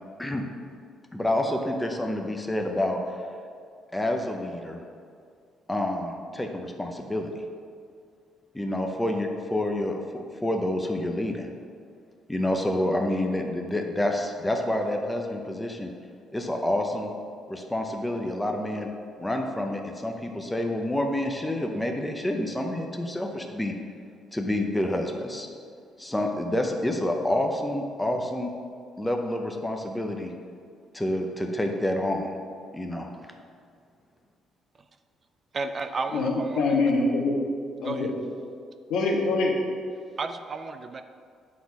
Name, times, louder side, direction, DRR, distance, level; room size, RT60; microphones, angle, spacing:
voice 1, 1.1-3.0 3.9-4.8 5.7-7.4 8.5-11.5 12.3-15.9 16.3-17.1 17.5-18.9 19.2-23.7 24.3-25.5 26.0-28.5 29.0-30.3 30.9-32.3 32.7-33.1, left 1 dB, 10° left, 3 dB, 0.6 m, -28 dB
voice 2, 35.5-36.6 37.8-38.1 40.2-41.0, right 3 dB, 35° right, 9 dB, 0.4 m, -32 dB
voice 3, 36.1-37.4 37.8-38.1 38.9-39.5, left 3 dB, 75° left, -1 dB, 1.3 m, -24 dB
8.4 x 4.0 x 4.7 m, 2.2 s
cardioid pair, 125°, 0 cm